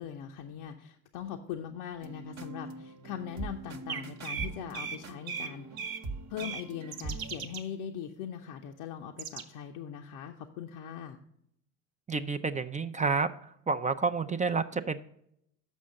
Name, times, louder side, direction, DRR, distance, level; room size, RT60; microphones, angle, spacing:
voice 1, 0.0-5.9 6.3-11.2, left 9 dB, 80° left, 3 dB, 0.8 m, -41 dB
sound 1, 2.0-7.3, right 3 dB, 45° right, 1.0 m, -42 dB
sound 2, 3.9-5.0 5.3-5.5 5.8-6.0 6.4-6.6 6.9-7.6 9.2-9.4, right 6 dB, 70° right, 1.0 m, -37 dB
voice 2, 12.1-13.3 13.7-15.0, right 4 dB, 20° right, 9 dB, 0.4 m, -29 dB
7.3 x 5.6 x 6.3 m, 0.73 s
supercardioid pair, 80°, 38 cm